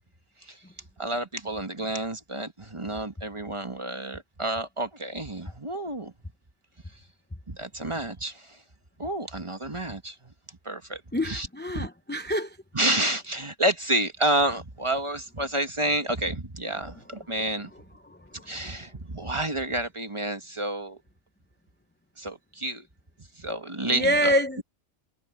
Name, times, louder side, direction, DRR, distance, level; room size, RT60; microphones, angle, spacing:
voice 1, 1.0-6.1 7.5-8.6 9.0-10.3 10.6-11.5 11.7-11.9 12.7-17.7 18.4-21.0 22.2-22.9 23.3-24.4, right 1 dB, 20° right, 1.4 m, -29 dB
voice 2, 11.1-12.6 18.1-18.5 23.9-24.6, equal, 10° left, 0.7 m, -26 dB
omnidirectional pair, 1.4 m